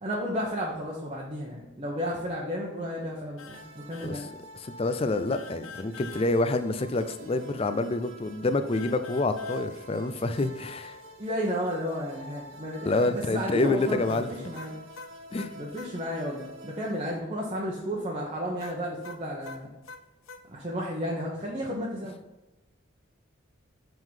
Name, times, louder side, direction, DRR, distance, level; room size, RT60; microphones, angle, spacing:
voice 1, 0.0-4.3 11.2-14.7 15.5-19.7 20.5-22.2, equal, 30° right, -4 dB, 1.0 m, -33 dB
sound 1, 3.4-3.6 3.9-4.1 5.3-6.3 8.7-9.6 14.1-15.9 18.6-20.4, left 5 dB, 85° left, 0.7 m, -45 dB
sound 2, 3.5-17.2, equal, 70° right, 0.9 m, -47 dB
voice 2, 4.5-11.0 12.8-14.5 15.3-15.5, left 2 dB, 30° left, 10 dB, 0.4 m, -27 dB
7.6 x 3.8 x 5.5 m, 0.98 s
head